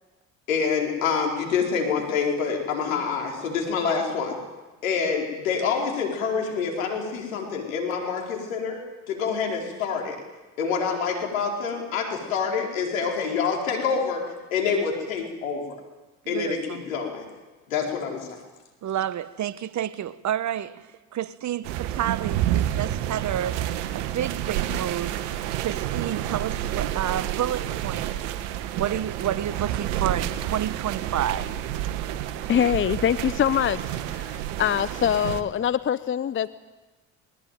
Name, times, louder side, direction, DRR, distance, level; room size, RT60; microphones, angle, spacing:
voice 1, 0.5-4.4 4.8-8.8 9.1-10.2 10.6-15.6 16.3-17.2 17.7-18.3, left 5 dB, 85° left, 1 dB, 4.6 m, -26 dB
voice 2, 16.2-16.8 18.8-20.8 21.1-23.6 23.9-25.2 25.6-28.1 28.7-31.5, right 11 dB, 45° right, 16 dB, 1.2 m, -29 dB
sound 1, 21.6-35.4, right 12 dB, 70° right, 1.6 m, -29 dB
voice 3, 32.5-33.8 34.1-36.5, left 9 dB, 30° left, 16 dB, 0.8 m, -24 dB
21.0 x 20.0 x 9.3 m, 1.2 s
hypercardioid pair, 60°, 40 cm